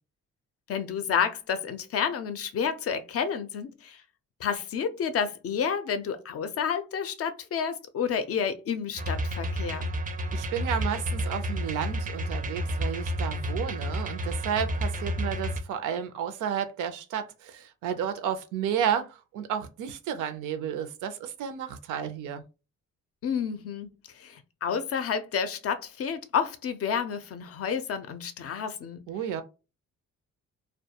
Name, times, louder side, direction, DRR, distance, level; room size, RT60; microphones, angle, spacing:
voice 1, 0.7-4.0 4.4-9.9 23.2-29.0, left 7 dB, 50° left, 0.4 m, -30 dB
sound 1, 9.0-15.6, equal, 30° right, 0.4 m, -31 dB
voice 2, 10.3-22.4 29.1-29.4, right 8 dB, 80° right, 0.5 m, -32 dB
2.2 x 2.2 x 2.8 m
cardioid pair, 90°, 30 cm